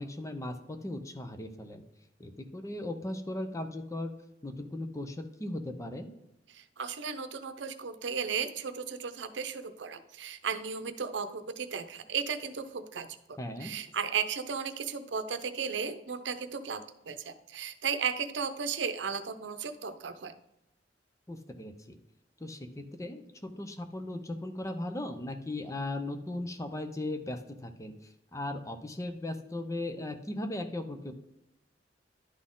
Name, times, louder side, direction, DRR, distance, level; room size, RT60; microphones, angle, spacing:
voice 1, 0.0-1.8 2.2-4.1 4.4-6.1 13.4-13.7 21.3-22.0 22.4-27.9 28.3-31.1, left 1 dB, 20° left, 7 dB, 0.7 m, -37 dB
voice 2, 6.5-20.3, right 6 dB, 85° right, 9 dB, 0.6 m, -35 dB
11.0 x 4.2 x 3.7 m, 0.86 s
head